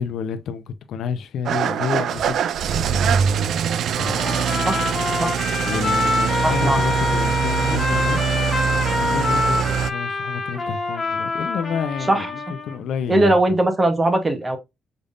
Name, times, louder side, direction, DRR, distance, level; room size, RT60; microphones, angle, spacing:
voice 1, 0.0-2.4 2.7-3.2 3.9-4.4 5.7-8.2 8.8-13.6, left 6 dB, 75° left, 0.6 m, -29 dB
Engine starting / Idling, 1.5-9.9, right 8 dB, 65° right, 0.3 m, -23 dB
Trumpet, 4.0-12.8, left 3 dB, 25° left, 1.5 m, -25 dB
voice 2, 6.4-6.8 7.7-7.8 12.1-12.3 13.1-14.6, right 2 dB, 20° right, 0.9 m, -20 dB
5.3 x 3.5 x 2.5 m
cardioid pair, 160°, 0 cm